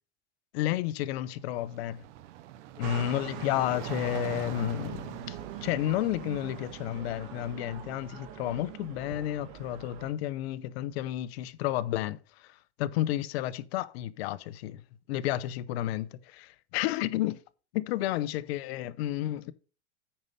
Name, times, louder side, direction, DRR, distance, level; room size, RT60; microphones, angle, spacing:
voice 1, 0.5-2.0 2.8-14.8 15.1-17.4 17.7-19.5, left 13 dB, 65° left, 0.8 m, -31 dB
sound 1, 1.3-7.3, right 9 dB, 80° right, 0.7 m, -43 dB
sound 2, 2.8-10.1, right 9 dB, 50° right, 1.5 m, -43 dB
8.8 x 5.4 x 5.5 m
supercardioid pair, 140°, 35 cm